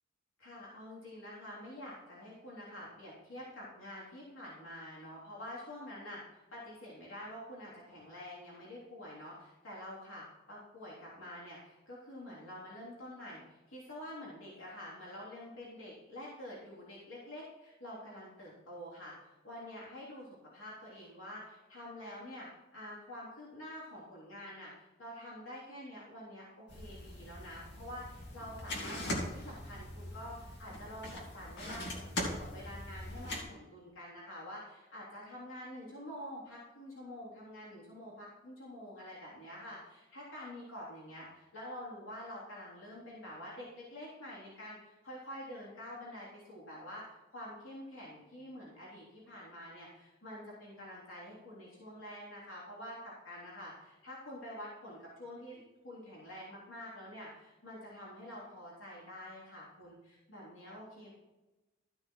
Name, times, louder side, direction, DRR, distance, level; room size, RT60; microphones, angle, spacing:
voice 1, 0.4-61.1, left 1 dB, 80° left, -7 dB, 3.4 m, -47 dB
sound 1, 26.7-33.4, left 1 dB, 55° left, 2.5 m, -41 dB
14.0 x 6.1 x 4.6 m, 1.1 s
head